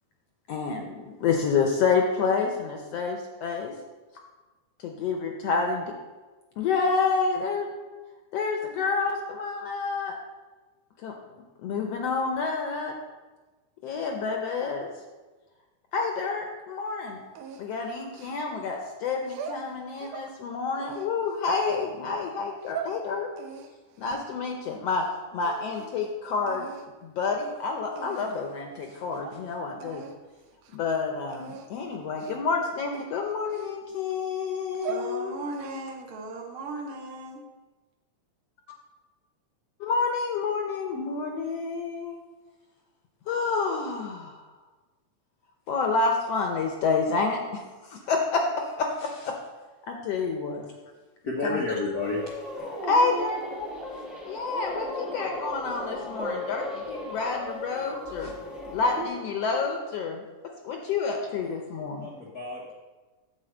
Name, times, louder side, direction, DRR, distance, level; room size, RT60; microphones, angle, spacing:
voice 1, 0.5-3.7 4.8-5.9 6.6-7.7 8.3-10.2 11.0-11.1 11.6-12.9 13.8-14.9 15.9-17.2 17.6-23.3 24.0-25.0 25.3-26.7 27.0-30.0 30.7-35.3 39.8-42.2 43.3-44.4 45.7-47.6 47.9-49.3 49.9-50.6 51.4-51.6 52.9-53.4 54.2-58.3 58.7-60.2 60.6-62.1, left 4 dB, 70° left, 2 dB, 1.6 m, -28 dB
sound 1, 17.4-18.7 19.2-20.3 20.8-21.8 22.4-23.0 23.4-25.1 25.4-26.0 26.5-26.9 27.6-27.7 28.0-28.5 28.9-29.0 29.2-29.4 29.8-30.2 30.5-30.8 31.3-31.7 32.2-32.5 32.9-34.1 34.6-35.1 35.5-36.0, right 7 dB, 90° right, 2.3 m, -41 dB
voice 2, 34.8-37.4, right 2 dB, 70° right, 0 dB, 1.2 m, -37 dB
voice 3, 51.2-52.2 62.0-62.7, left 3 dB, 85° left, -3 dB, 0.8 m, -30 dB
sound 2, 52.0-59.1, left 1 dB, ahead, 0.7 m, -36 dB
9.4 x 4.6 x 7.7 m, 1.2 s
omnidirectional pair, 3.5 m